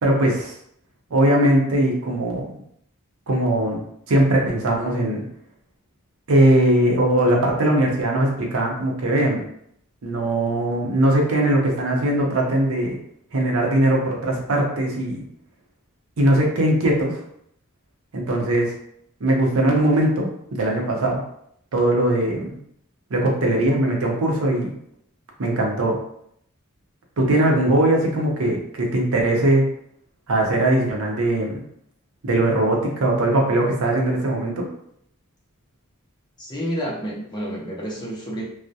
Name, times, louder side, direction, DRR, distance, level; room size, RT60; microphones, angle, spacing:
voice 1, 0.0-0.5 1.1-2.5 3.3-3.8 4.1-5.2 6.3-9.4 10.0-13.0 13.3-15.2 16.2-17.1 18.1-18.7 19.2-21.2 21.7-22.6 23.1-24.7 25.4-26.0 27.2-29.6 30.3-31.6 32.2-34.6, right 1 dB, 75° right, 0 dB, 0.6 m, -20 dB
voice 2, 36.4-38.4, equal, 20° left, -4 dB, 0.6 m, -29 dB
2.3 x 2.0 x 2.6 m, 0.70 s
head